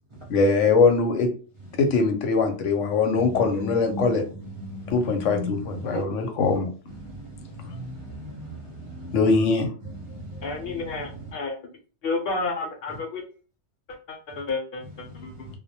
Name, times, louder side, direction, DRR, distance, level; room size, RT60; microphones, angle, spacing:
voice 1, 0.3-1.3 1.8-4.2 4.9-6.7 9.1-9.7, left 4 dB, 85° left, 0.9 m, -22 dB
voice 2, 3.4-4.1 4.7-4.9 5.3-5.5 5.9-6.0 7.6-8.6 8.9-9.1 10.2-10.4 15.1-15.2, equal, 35° right, 0.5 m, -35 dB
voice 3, 10.4-11.7 12.0-13.2 13.9-15.5, left 3 dB, 60° left, 0.8 m, -31 dB
2.2 x 2.0 x 2.7 m
omnidirectional pair, 1.2 m